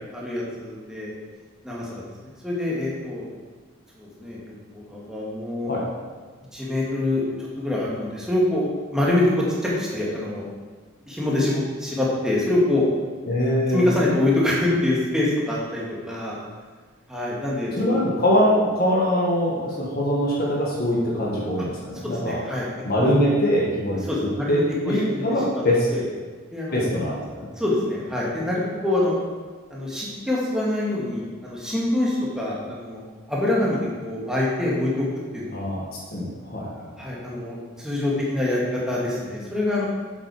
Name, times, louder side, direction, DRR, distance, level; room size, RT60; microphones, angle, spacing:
voice 1, 0.1-1.1 1.6-2.0 2.4-3.3 4.0-5.7 6.5-7.2 7.6-9.3 9.6-10.4 11.1-12.9 13.7-16.3 17.1-17.9 22.0-22.7 23.0-23.1 24.1-25.6 25.9-26.1 26.5-26.9 27.6-29.2 29.7-33.0 33.3-35.1 35.3-35.6 37.0-39.9, left 1 dB, 5° right, -6 dB, 1.9 m, -25 dB
voice 2, 13.3-13.8 17.8-22.4 22.8-24.0 24.5-24.6 24.8-25.9 26.7-27.5 35.5-35.8 36.1-36.9, equal, 45° left, -5 dB, 1.6 m, -22 dB
7.6 x 7.5 x 4.8 m, 1.5 s
head